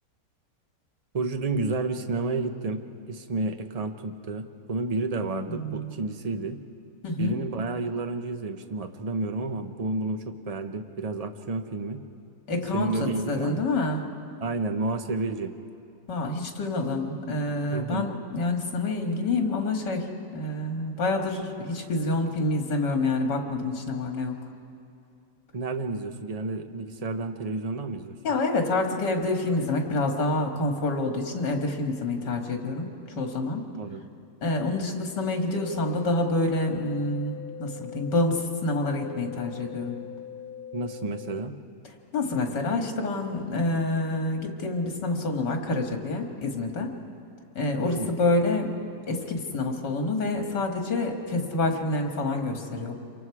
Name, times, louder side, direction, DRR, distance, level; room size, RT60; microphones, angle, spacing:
voice 1, 1.1-6.6 7.2-12.0 12.7-13.7 14.4-15.5 17.7-18.1 25.5-28.2 33.7-34.0 40.7-41.6 47.8-48.1, right 3 dB, 35° right, 7 dB, 0.6 m, -31 dB
voice 2, 5.3-5.9 7.0-7.4 12.5-14.0 16.1-24.4 28.2-33.7 34.4-40.0 42.1-46.9 47.6-48.7 49.1-53.0, left 2 dB, 75° left, 3 dB, 2.5 m, -27 dB
sound 1, 35.5-41.5, left 9 dB, 45° left, 0.7 m, -41 dB
28.0 x 24.0 x 4.8 m, 2.6 s
omnidirectional pair, 1.9 m